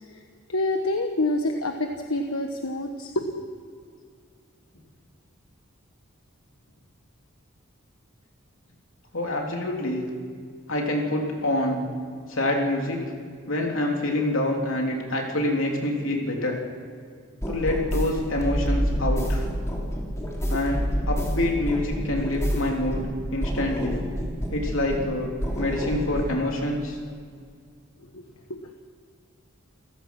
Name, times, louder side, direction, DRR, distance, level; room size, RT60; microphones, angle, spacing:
voice 1, 0.5-3.6 28.1-28.2 28.5-28.7, left 2 dB, 85° left, 4 dB, 1.3 m, -27 dB
voice 2, 9.1-10.0 10.7-11.8 12.3-13.0 13.5-16.6 17.5-19.4 20.5-20.8 21.1-24.0 24.5-25.3 25.6-27.0, left 1 dB, 70° left, 0 dB, 3.4 m, -26 dB
sound 1, 17.4-23.1 23.4-25.1 25.4-26.3, equal, 15° left, 3.2 m, -28 dB
29.0 x 15.5 x 6.1 m, 2.2 s
head